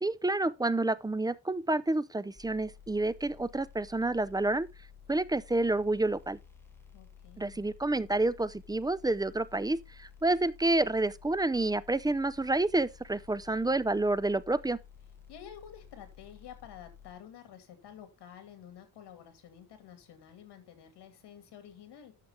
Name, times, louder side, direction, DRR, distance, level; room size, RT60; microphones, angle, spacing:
voice 1, 0.0-4.7 5.1-6.4 7.4-14.8, right 2 dB, 10° right, 0.5 m, -29 dB
sound 1, 2.3-17.1, left 8 dB, 5° left, 1.8 m, -54 dB
voice 2, 6.9-7.7 15.3-22.1, left 9 dB, 80° left, 2.6 m, -50 dB
10.5 x 6.8 x 3.6 m
cardioid pair, 95°, 40 cm